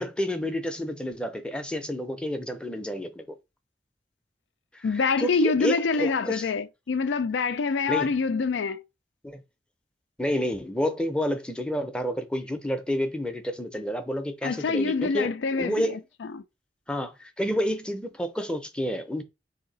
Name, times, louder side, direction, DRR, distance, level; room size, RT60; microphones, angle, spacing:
voice 1, 0.0-3.2 4.7-4.9 5.2-6.5 7.9-8.1 9.2-9.4 10.2-16.0 16.9-19.2, equal, 5° left, 0.5 m, -29 dB
voice 2, 4.8-8.8 14.4-16.4, left 4 dB, 85° left, 0.4 m, -26 dB
3.9 x 2.8 x 3.9 m
head